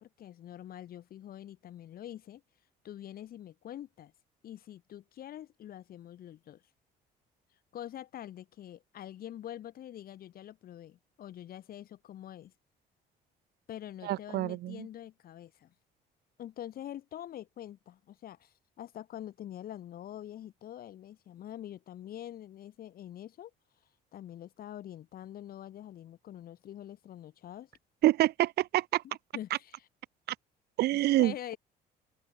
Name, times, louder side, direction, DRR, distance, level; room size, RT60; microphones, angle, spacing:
voice 1, 0.0-2.4 2.8-4.1 4.4-6.6 7.7-12.5 13.7-15.7 16.4-23.5 24.1-27.7 29.3-29.9 30.9-31.6, left 11 dB, 60° left, 5.2 m, -45 dB
voice 2, 14.0-14.9 28.0-29.0 30.8-31.5, right 15 dB, 75° right, 1.7 m, -27 dB
open air
cardioid pair, 110°, 17 cm